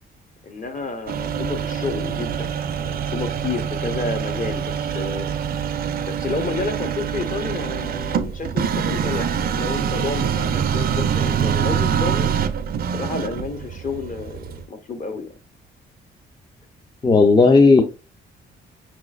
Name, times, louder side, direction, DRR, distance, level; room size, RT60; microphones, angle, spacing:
voice 1, 0.4-5.3 6.0-12.3 12.9-15.3, left 4 dB, 40° left, 7 dB, 0.9 m, -30 dB
sound 1, 1.1-14.6, right 8 dB, 50° right, 0.5 m, -25 dB
voice 2, 17.0-17.8, left 3 dB, 20° left, 4 dB, 0.5 m, -13 dB
5.5 x 2.9 x 2.4 m, 0.29 s
cardioid pair, 90°, 20 cm